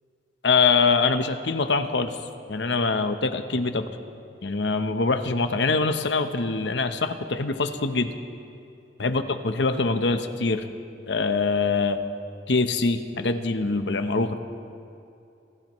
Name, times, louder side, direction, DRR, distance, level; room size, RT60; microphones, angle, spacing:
voice 1, 0.4-2.2 2.5-3.9 4.4-8.1 9.0-10.6 11.1-12.0 12.5-14.4, left 4 dB, 75° left, 8 dB, 0.9 m, -24 dB
27.5 x 15.0 x 3.1 m, 2.7 s
head